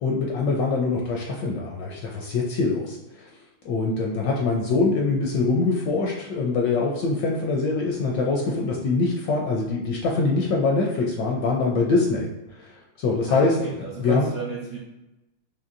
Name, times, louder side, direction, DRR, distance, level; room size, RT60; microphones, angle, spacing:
voice 1, 0.0-3.0 3.6-12.3 12.6-12.7 13.0-13.6 14.0-14.3, left 3 dB, 75° left, -1 dB, 1.0 m, -23 dB
voice 2, 13.3-14.8, right 5 dB, 80° right, -4 dB, 0.7 m, -33 dB
4.3 x 2.8 x 2.5 m, 0.98 s
omnidirectional pair, 2.3 m